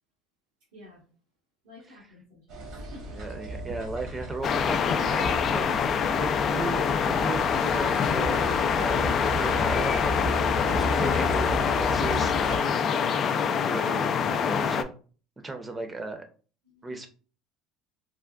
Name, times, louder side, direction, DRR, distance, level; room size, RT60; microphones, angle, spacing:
voice 1, 0.7-1.0 1.6-3.2 16.6-17.0, left 1 dB, 90° right, -6 dB, 1.2 m, -51 dB
sound 1, 2.5-12.6, equal, 65° right, 1.1 m, -35 dB
voice 2, 3.1-5.8 6.2-13.2 13.5-14.9 15.4-16.2 16.8-17.1, right 3 dB, 20° right, 6 dB, 0.6 m, -36 dB
sound 2, 4.4-14.8, left 7 dB, 45° left, 0.3 m, -25 dB
3.4 x 2.2 x 2.3 m, 0.38 s
supercardioid pair, 95°, 0 cm